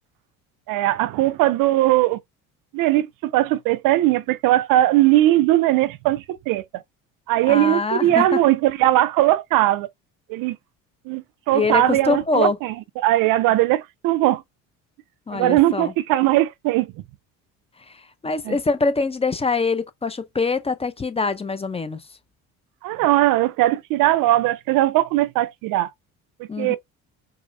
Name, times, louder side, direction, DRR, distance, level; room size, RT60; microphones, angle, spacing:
voice 1, 0.7-2.2 2.7-6.8 7.3-9.9 10.3-10.6 11.1-14.4 15.3-16.9 18.5-18.6 22.8-25.9 26.4-26.8, right 15 dB, 65° right, 0.5 m, -19 dB
voice 2, 7.5-8.4 11.5-12.6 15.3-15.9 17.9-22.0 26.5-26.8, left 4 dB, 15° left, 0.5 m, -24 dB
4.7 x 2.0 x 2.6 m
supercardioid pair, 85°, 36 cm